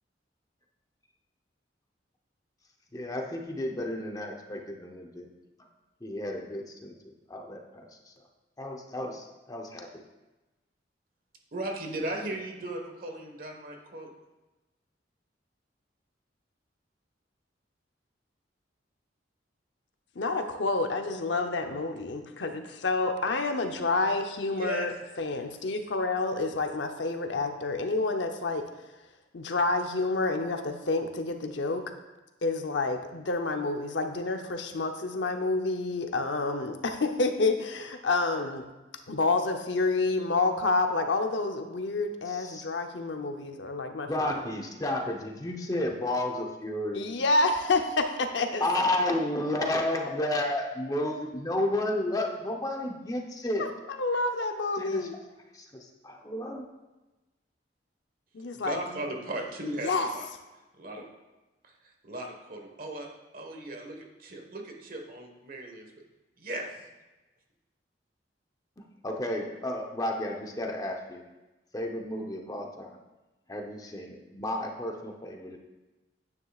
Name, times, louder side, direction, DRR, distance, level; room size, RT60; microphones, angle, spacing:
voice 1, 2.9-5.3 6.0-6.9 7.3-8.1 8.6-9.9 42.3-42.6 44.1-47.0 48.6-53.6 54.8-55.1 55.5-56.6 69.0-71.2 71.7-73.0 73.5-75.6, left 1 dB, 20° left, 2 dB, 0.9 m, -32 dB
voice 2, 11.5-14.1 24.5-24.9 58.5-60.2 60.8-61.1 61.6-61.7 62.0-63.1 63.3-65.9 66.4-66.8, right 1 dB, 50° right, 2 dB, 1.4 m, -37 dB
voice 3, 20.2-28.7 29.3-31.8 32.4-38.7 39.1-44.3 46.9-48.6 53.6-55.1 58.3-58.8 59.8-60.1, left 3 dB, 80° left, 6 dB, 0.8 m, -29 dB
9.6 x 9.5 x 2.4 m, 1.1 s
head